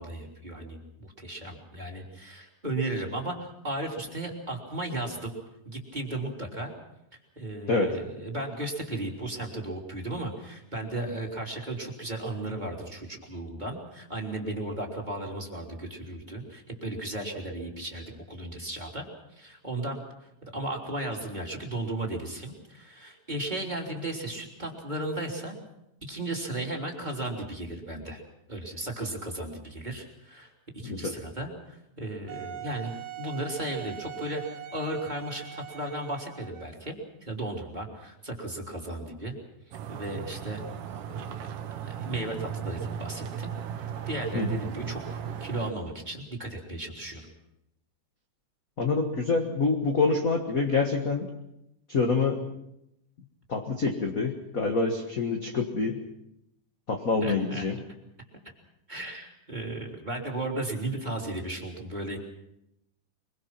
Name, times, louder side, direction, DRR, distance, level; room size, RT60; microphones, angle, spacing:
voice 1, 0.0-5.3 5.6-6.7 7.3-25.6 26.0-28.2 28.5-39.3 39.7-40.6 41.1-47.3 57.2-57.6 58.9-62.2, right 1 dB, 15° right, -1 dB, 3.2 m, -35 dB
voice 2, 30.8-31.2 44.3-44.6 48.8-51.3 51.9-52.5 53.5-56.0 56.9-57.8, left 4 dB, 45° left, 3 dB, 1.2 m, -26 dB
Wind instrument woodwind instrument, 32.3-36.8, right 12 dB, 55° right, 1.5 m, -42 dB
sound 1, 39.7-45.7, right 8 dB, 75° right, 2.8 m, -36 dB
24.0 x 23.0 x 6.0 m, 0.84 s
omnidirectional pair, 3.7 m